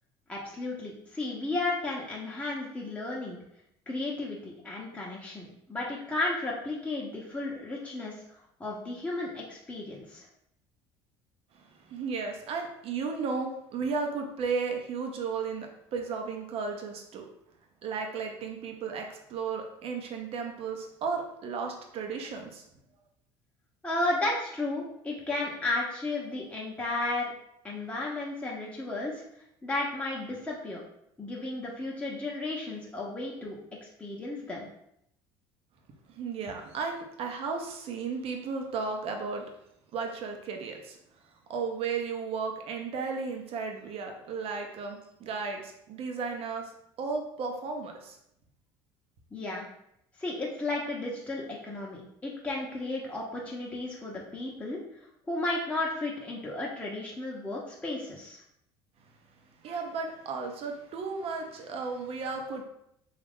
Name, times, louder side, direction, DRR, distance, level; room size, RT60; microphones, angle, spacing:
voice 1, 0.3-3.4 3.9-8.2 8.6-10.3 23.8-27.3 27.6-29.2 29.6-30.8 31.2-34.7 49.3-49.6 50.2-54.8 55.3-58.4, left 2 dB, 10° left, -4 dB, 0.8 m, -33 dB
voice 2, 11.5-17.3 17.8-22.6 36.1-39.5 39.9-41.0 41.5-46.7 47.0-48.2 59.6-62.6, right 5 dB, 55° right, 3 dB, 0.7 m, -34 dB
2.9 x 2.4 x 3.5 m, 0.75 s
supercardioid pair, 90°, 12 cm